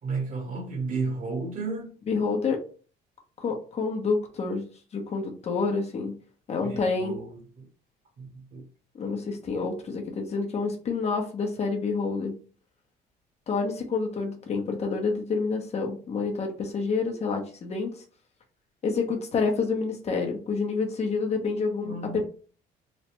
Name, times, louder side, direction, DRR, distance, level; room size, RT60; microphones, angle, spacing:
voice 1, 0.0-1.9 6.6-7.6 8.2-8.7 21.8-22.2, right 3 dB, 50° right, 1.2 m, -33 dB
voice 2, 2.1-2.6 3.4-4.6 4.9-6.1 6.5-7.2 8.9-12.4 13.5-17.9 18.8-22.2, left 4 dB, 40° left, 0.9 m, -28 dB
3.1 x 2.2 x 3.0 m
cardioid pair, 110°, 17 cm